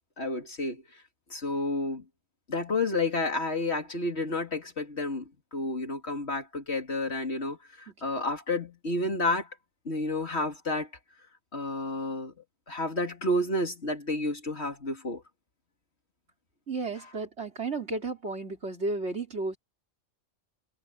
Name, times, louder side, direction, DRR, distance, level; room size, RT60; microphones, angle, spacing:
voice 1, 0.2-0.8 1.3-2.0 2.5-9.5 9.9-10.9 11.5-12.3 12.7-15.2, left 2 dB, 75° left, 3.3 m, -30 dB
voice 2, 16.7-19.6, right 3 dB, 90° right, 4.3 m, -33 dB
omnidirectional pair, 1.1 m